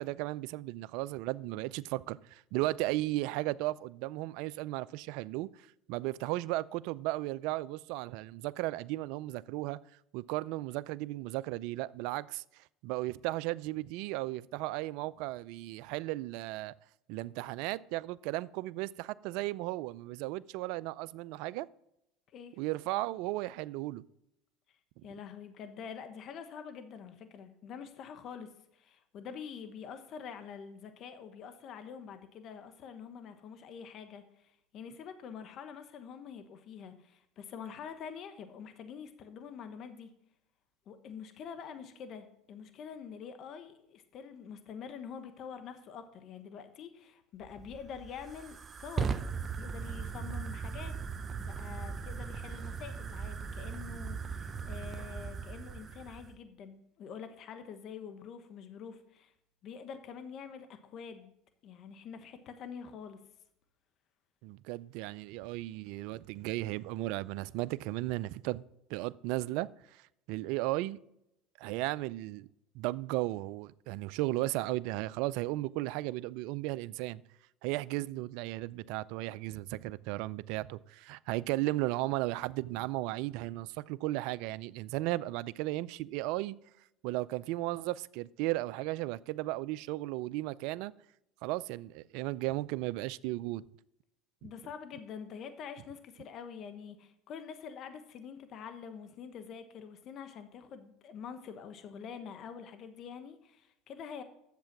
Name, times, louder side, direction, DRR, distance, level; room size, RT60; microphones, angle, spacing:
voice 1, 0.0-9.8 10.1-16.7 17.1-21.7 22.6-24.0 25.0-25.1 64.4-68.6 68.9-71.0 71.6-72.5 72.7-77.2 77.6-86.6 87.0-90.9 91.4-93.6 94.4-94.5, right 18 dB, 70° right, 0.4 m, -35 dB
voice 2, 25.0-40.1 40.9-49.2 49.6-50.9 51.4-59.3 59.6-61.3 61.6-63.2 94.4-104.2, left 7 dB, 50° left, 1.2 m, -46 dB
Fire, 47.4-56.4, right 5 dB, 30° right, 0.7 m, -38 dB
10.5 x 7.5 x 5.9 m
supercardioid pair, 95°, 0 cm